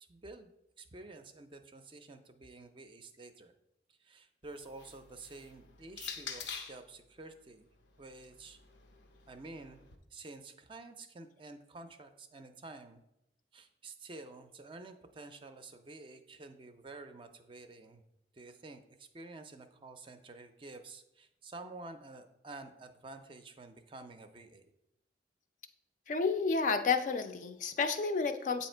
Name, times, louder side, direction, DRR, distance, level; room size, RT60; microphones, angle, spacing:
voice 1, 0.1-0.5 0.8-3.5 4.1-7.7 8.0-8.6 9.3-9.8 10.1-13.0 13.5-18.0 18.4-18.8 19.1-24.6, right 3 dB, 30° right, 8 dB, 0.4 m, -50 dB
sound 1, 4.4-6.9 7.8-9.9, left 6 dB, 90° left, 0.6 m, -47 dB
voice 2, 26.1-28.7, left 4 dB, 45° left, 8 dB, 0.4 m, -31 dB
7.9 x 2.8 x 4.3 m, 0.85 s
head